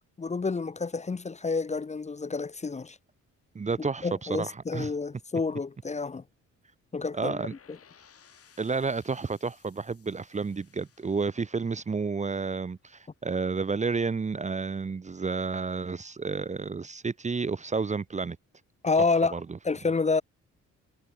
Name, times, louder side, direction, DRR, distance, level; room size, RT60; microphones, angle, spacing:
voice 1, 0.2-3.0 3.8-6.2 6.9-7.4 7.7-7.8 18.8-19.4 19.6-20.2, left 4 dB, 25° left, 0.9 m, -29 dB
voice 2, 3.5-4.9 7.1-7.5 8.6-18.4 19.3-19.4, right 4 dB, 25° right, 0.8 m, -31 dB
sound 1, 7.1-13.0, left 7 dB, 50° left, 7.5 m, -60 dB
cardioid pair, 90°, 30 cm